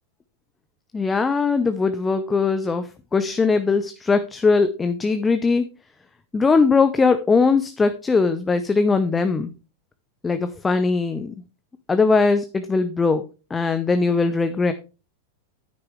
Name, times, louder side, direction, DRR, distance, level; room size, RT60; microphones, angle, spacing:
voice 1, 0.9-5.7 6.3-9.5 10.2-11.3 11.9-13.2 13.5-14.7, left 4 dB, 15° left, 10 dB, 0.8 m, -20 dB
9.9 x 9.3 x 3.3 m, 0.31 s
figure-of-eight pair, 90°, 0 cm